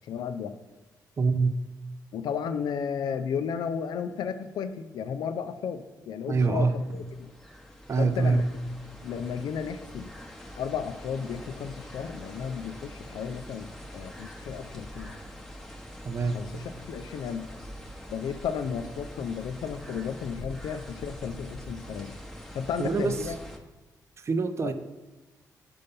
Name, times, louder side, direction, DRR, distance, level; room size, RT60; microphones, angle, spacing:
voice 1, 0.0-0.6 2.1-7.3 8.0-8.5 9.0-10.1 10.6-15.2 16.3-17.5 18.1-22.2 22.5-23.4 24.6-24.7, left 7 dB, 80° left, 10 dB, 0.4 m, -33 dB
voice 2, 1.2-1.6 6.3-6.8 7.9-8.4 16.0-16.4 22.8-23.1 24.2-24.7, right 4 dB, 40° right, 9 dB, 0.5 m, -25 dB
sound 1, 6.6-23.6, equal, 5° left, 0.8 m, -44 dB
5.5 x 5.4 x 5.3 m, 1.1 s
cardioid pair, 85°, 7 cm